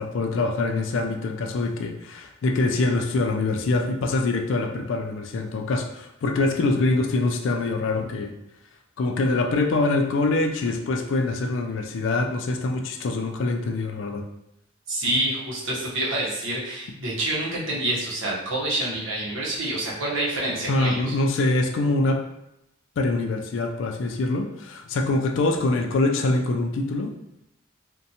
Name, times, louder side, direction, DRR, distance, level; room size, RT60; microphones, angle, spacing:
voice 1, 0.0-8.3 9.0-14.2 20.7-22.2 23.0-27.1, left 2 dB, 70° left, 4 dB, 0.3 m, -24 dB
voice 2, 14.9-21.1, right 1 dB, 80° right, -6 dB, 0.9 m, -27 dB
2.6 x 2.2 x 2.7 m, 0.83 s
head